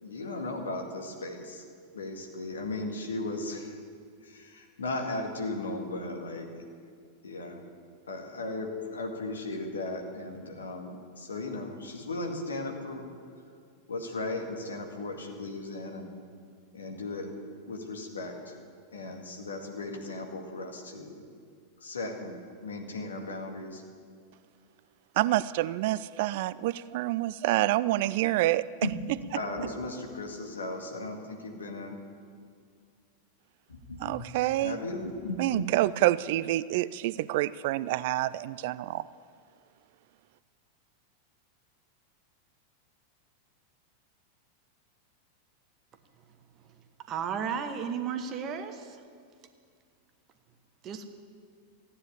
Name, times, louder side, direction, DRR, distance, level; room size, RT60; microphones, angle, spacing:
voice 1, 0.0-1.6 1.9-3.8 4.2-6.5 7.2-7.6 8.1-13.1 13.9-16.1 16.7-17.3 17.7-18.6 18.9-21.2 21.8-23.8 28.8-32.0 33.7-34.3 34.6-35.7, left 2 dB, 70° left, 3 dB, 2.1 m, -36 dB
voice 2, 25.2-28.6 34.0-34.8 35.4-39.1, right 16 dB, 50° right, 18 dB, 0.3 m, -27 dB
voice 3, 47.1-49.0 50.8-51.1, right 7 dB, 35° right, 8 dB, 1.3 m, -33 dB
15.0 x 9.9 x 8.7 m, 2.1 s
figure-of-eight pair, 90°, 0 cm